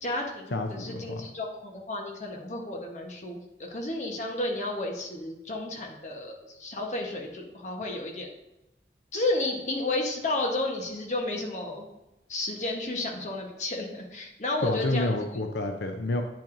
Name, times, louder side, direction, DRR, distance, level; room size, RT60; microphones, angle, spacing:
voice 1, 0.0-8.3 9.1-11.9 12.3-15.2, left 2 dB, 40° left, 1 dB, 1.1 m, -32 dB
voice 2, 0.5-1.2 14.6-16.2, left 2 dB, 85° left, 5 dB, 0.6 m, -29 dB
8.7 x 5.7 x 2.6 m, 0.96 s
head